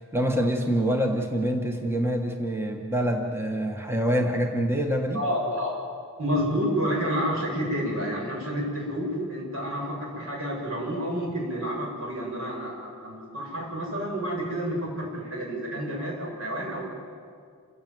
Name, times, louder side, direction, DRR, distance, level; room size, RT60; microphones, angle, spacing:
voice 1, 0.0-5.2, equal, 10° right, 3 dB, 1.4 m, -26 dB
voice 2, 5.1-5.7 6.2-16.8, equal, 70° right, -1 dB, 7.5 m, -29 dB
28.5 x 15.5 x 9.4 m, 2.2 s
head